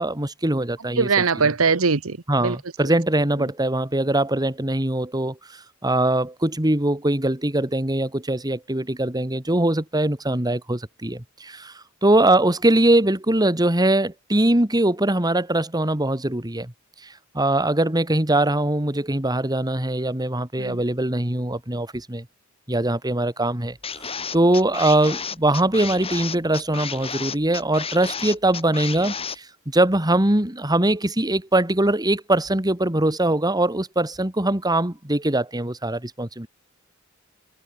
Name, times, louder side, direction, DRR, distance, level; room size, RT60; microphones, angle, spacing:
voice 1, 0.0-1.1 1.4-1.5 2.3-16.7 17.0-22.3 22.7-23.8 24.3-36.5, right 1 dB, 20° right, 2.3 m, -22 dB
voice 2, 1.0-2.6 2.8-2.9 20.6-20.8, right 5 dB, 85° right, 1.1 m, -21 dB
sound 1, 23.8-29.4, left 6 dB, 30° left, 3.2 m, -32 dB
head